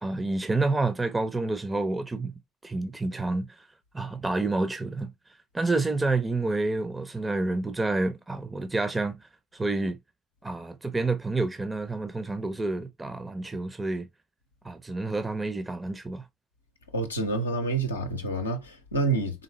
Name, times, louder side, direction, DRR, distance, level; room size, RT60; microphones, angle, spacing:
voice 1, 0.0-2.3 2.6-3.7 3.9-5.1 5.5-10.0 10.4-14.1 14.6-16.2, right 2 dB, 20° right, 0.6 m, -29 dB
voice 2, 16.9-19.4, right 3 dB, 90° left, 0.6 m, -28 dB
4.0 x 3.7 x 3.1 m
figure-of-eight pair, 45°, 0 cm